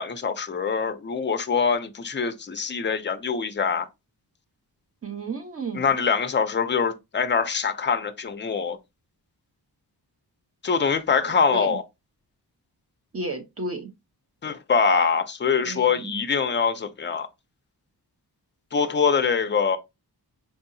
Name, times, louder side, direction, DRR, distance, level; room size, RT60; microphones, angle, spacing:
voice 1, 0.0-3.9 5.7-8.8 10.6-11.8 14.4-17.3 18.7-19.8, left 6 dB, 30° left, 0.4 m, -24 dB
voice 2, 5.0-6.0 11.2-11.8 13.1-13.9 15.6-16.2, right 3 dB, 35° right, 0.7 m, -33 dB
4.7 x 2.7 x 2.6 m
wide cardioid pair, 175°, 41 cm